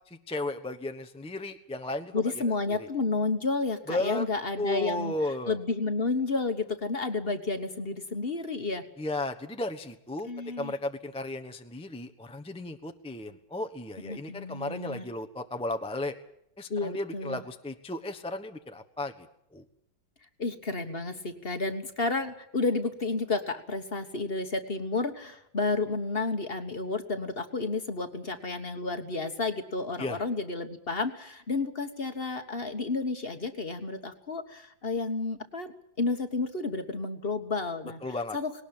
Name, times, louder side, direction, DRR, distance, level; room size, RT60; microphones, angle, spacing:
voice 1, 0.1-2.2 2.7-2.9 3.9-4.2 4.6-5.6 9.0-10.3 10.6-16.1 16.6-19.1 19.5-19.6 30.0-30.2 38.0-38.4, left 2 dB, 5° left, 5 dB, 0.7 m, -34 dB
voice 2, 2.1-5.1 5.5-8.8 10.2-10.7 14.0-15.0 16.7-17.4 20.4-38.0 38.3-38.5, left 3 dB, 35° left, 8 dB, 1.4 m, -31 dB
20.0 x 18.5 x 8.9 m, 0.75 s
omnidirectional pair, 2.1 m